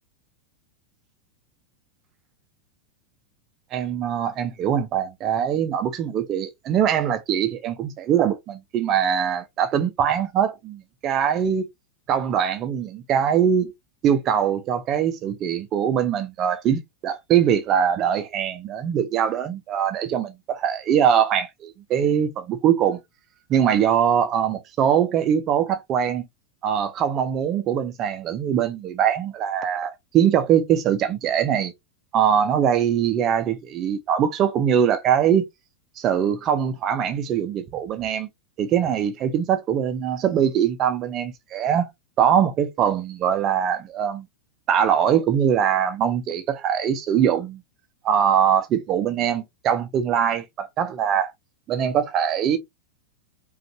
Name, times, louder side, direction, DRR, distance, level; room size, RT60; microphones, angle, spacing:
voice 1, 3.7-11.7 12.1-13.7 14.0-23.0 23.5-26.2 26.6-31.7 32.1-35.5 36.0-38.3 38.6-41.9 42.2-44.3 44.7-47.6 48.0-51.3 51.7-52.6, right 8 dB, 35° right, 0.6 m, -22 dB
5.1 x 2.5 x 2.8 m
figure-of-eight pair, 90°, 0 cm